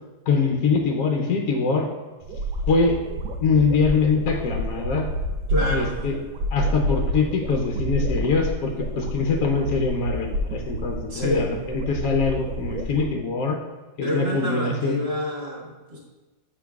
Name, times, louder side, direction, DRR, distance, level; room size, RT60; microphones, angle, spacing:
voice 1, 0.3-1.9 2.7-3.0 3.4-5.1 5.7-6.2 6.5-13.6 14.0-15.0, left 4 dB, 65° left, 1 dB, 1.0 m, -23 dB
sound 1, 2.2-13.1, equal, 75° right, 1.1 m, -29 dB
voice 2, 5.5-6.0 11.1-11.5 14.0-16.0, left 1 dB, 35° right, -5 dB, 1.4 m, -27 dB
7.7 x 6.0 x 2.3 m, 1.2 s
omnidirectional pair, 2.0 m